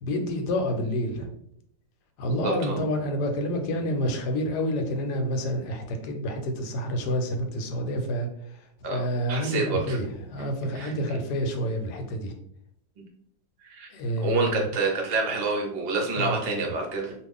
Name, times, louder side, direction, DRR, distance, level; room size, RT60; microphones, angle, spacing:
voice 1, 0.0-1.3 2.2-8.3 8.9-12.3 13.9-14.7 16.2-16.4, equal, 80° left, 5 dB, 1.2 m, -28 dB
voice 2, 2.3-2.8 8.8-10.0 10.7-10.9 13.7-13.9 14.2-17.1, right 3 dB, 60° right, 0 dB, 0.6 m, -28 dB
2.7 x 2.4 x 3.5 m, 0.71 s
omnidirectional pair, 1.8 m